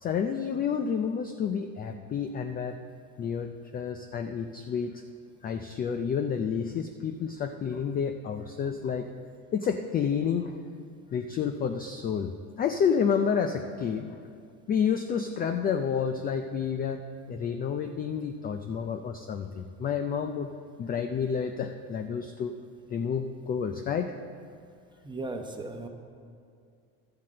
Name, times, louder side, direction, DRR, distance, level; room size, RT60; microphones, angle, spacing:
voice 1, 0.0-2.8 3.2-5.0 5.4-9.1 9.5-10.6 11.1-14.2 14.7-20.5 20.8-22.5 22.9-24.1, left 7 dB, 25° left, 8 dB, 0.3 m, -30 dB
voice 2, 25.0-25.9, right 2 dB, 10° right, 3 dB, 1.0 m, -36 dB
12.5 x 5.9 x 7.5 m, 2.3 s
supercardioid pair, 120°, 40 cm